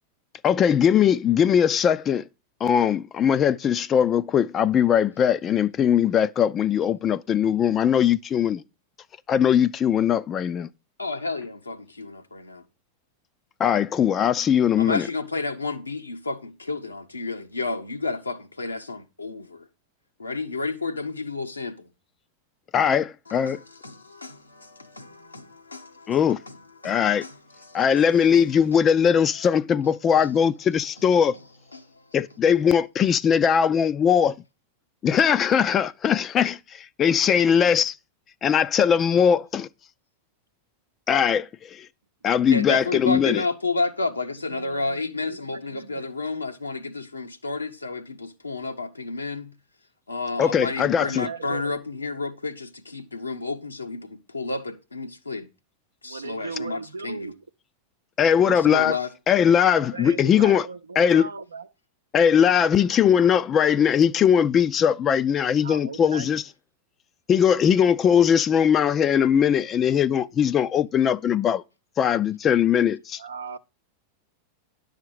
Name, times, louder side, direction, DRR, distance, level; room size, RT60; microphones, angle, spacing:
voice 1, 0.4-2.3 2.6-8.6 9.3-10.7 13.6-15.1 22.7-23.6 26.1-26.4 26.8-27.2 27.7-31.3 32.1-34.4 35.0-37.9 38.4-39.7 41.1-41.9 42.2-43.4 50.4-51.3 58.2-58.9 59.3-60.7 61.0-61.2 62.1-66.4 67.3-71.6 72.0-73.2, left 8 dB, 25° left, 0.4 m, -20 dB
voice 2, 11.0-12.6 14.8-19.7 20.2-21.9 23.3-28.4 30.2-30.3 31.7-32.2 42.5-49.6 50.1-55.5 56.0-57.3 58.4-59.1, left 3 dB, 80° left, 1.0 m, -31 dB
voice 3, 44.5-46.0 50.9-51.8 56.0-57.4 59.7-61.7 65.6-66.3 73.2-73.6, right 5 dB, 75° right, 0.6 m, -38 dB
10.5 x 6.5 x 4.7 m
figure-of-eight pair, 90°, 0 cm